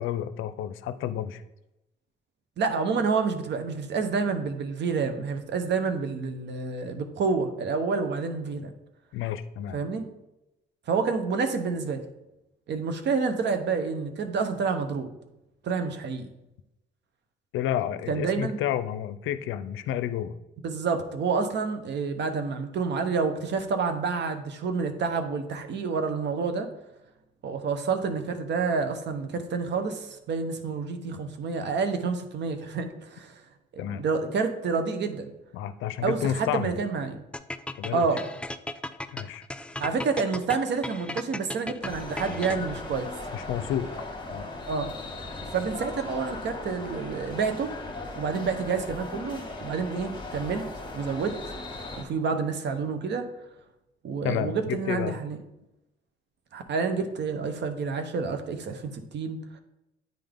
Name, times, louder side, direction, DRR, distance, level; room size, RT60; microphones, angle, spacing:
voice 1, 0.0-1.4 9.1-9.8 17.5-20.3 33.8-34.0 35.5-36.8 37.8-38.1 39.1-39.4 43.3-43.9 44.3-44.5 54.2-55.1, left 10 dB, 85° left, 13 dB, 0.4 m, -30 dB
voice 2, 2.6-8.7 9.7-10.1 10.9-12.0 12.7-15.1 15.6-16.3 18.1-18.6 20.6-26.7 27.4-33.4 33.7-35.3 36.0-37.2 37.9-38.2 39.8-43.1 43.4-43.5 44.7-44.9 45.5-47.7 48.1-50.7 50.9-51.5 52.0-53.3 54.0-55.4 56.5-59.4, right 5 dB, 60° right, 8 dB, 0.9 m, -28 dB
sound 1, 37.3-42.9, left 1 dB, 5° left, 0.3 m, -36 dB
sound 2, 41.8-52.0, left 2 dB, 25° left, 1.7 m, -38 dB
9.1 x 3.7 x 3.5 m, 0.92 s
cardioid pair, 90°, 20 cm